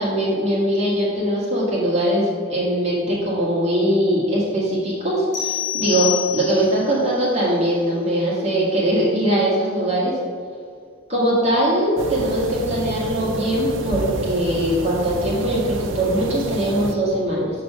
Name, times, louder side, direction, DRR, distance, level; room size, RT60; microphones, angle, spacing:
voice 1, 0.0-10.1 11.1-17.5, right 1 dB, 30° right, -6 dB, 1.6 m, -21 dB
sound 1, 5.3-6.9, left 13 dB, 65° left, 1.0 m, -26 dB
sound 2, 12.0-17.0, right 2 dB, 75° right, 0.5 m, -28 dB
6.7 x 3.8 x 5.9 m, 2.2 s
head